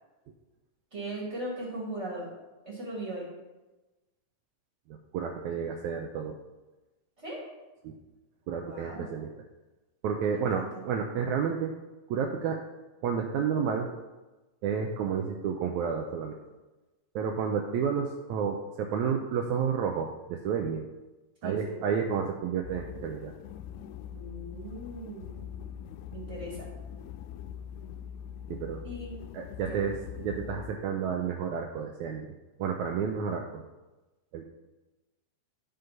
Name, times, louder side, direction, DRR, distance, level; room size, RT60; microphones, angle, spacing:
voice 1, 0.9-2.3 2.7-3.3 7.2-7.4 8.6-9.2 10.3-10.7 21.4-21.8 24.1-25.6 26.1-26.7 28.8-29.2 29.7-29.8, right 1 dB, 25° right, -4 dB, 2.3 m, -39 dB
voice 2, 4.9-6.4 7.8-8.0 8.5-9.3 10.0-11.7 12.1-12.6 13.0-13.9 14.6-16.4 17.2-20.9 21.4-23.3 28.5-28.8 29.3-32.3 32.6-33.6 34.3-34.4, right 7 dB, 75° right, 2 dB, 1.9 m, -31 dB
sound 1, 22.6-30.7, left 8 dB, 80° left, 1.7 m, -42 dB
11.5 x 5.4 x 5.8 m, 1.1 s
omnidirectional pair, 3.7 m